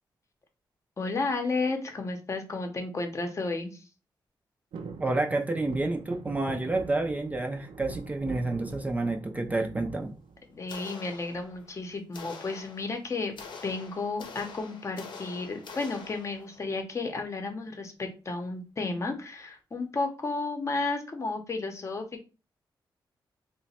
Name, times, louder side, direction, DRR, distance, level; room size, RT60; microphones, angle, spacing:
voice 1, 1.0-3.8 10.5-13.4 13.6-22.2, left 3 dB, 35° left, 0.7 m, -32 dB
sound 1, 4.7-10.9 11.3-11.9 13.2-13.6 13.9-14.0 14.3-14.6 15.4-16.3 16.8-16.9, right 5 dB, 85° right, 0.5 m, -43 dB
voice 2, 5.0-10.1, right 2 dB, 20° right, 0.4 m, -29 dB
sound 2, 10.7-11.7 12.1-16.6, left 5 dB, 75° left, 0.8 m, -45 dB
2.9 x 2.1 x 4.1 m
wide cardioid pair, 110°, 8 cm